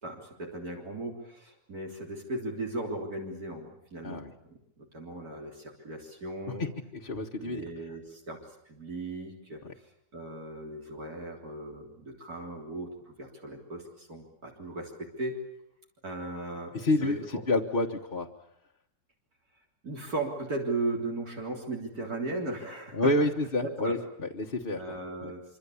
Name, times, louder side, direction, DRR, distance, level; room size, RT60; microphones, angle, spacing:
voice 1, 0.0-4.2 4.5-6.7 7.4-8.4 8.7-9.6 10.1-15.5 16.0-16.7 17.0-17.1 19.8-23.1 23.6-24.0 24.8-25.4, right 2 dB, 70° right, 0 dB, 4.1 m, -37 dB
voice 2, 7.0-7.6 16.7-17.2 17.5-18.3 22.9-25.0 25.2-25.3, left 2 dB, 35° left, -1 dB, 1.6 m, -28 dB
25.5 x 25.0 x 8.5 m, 0.75 s
omnidirectional pair, 1.7 m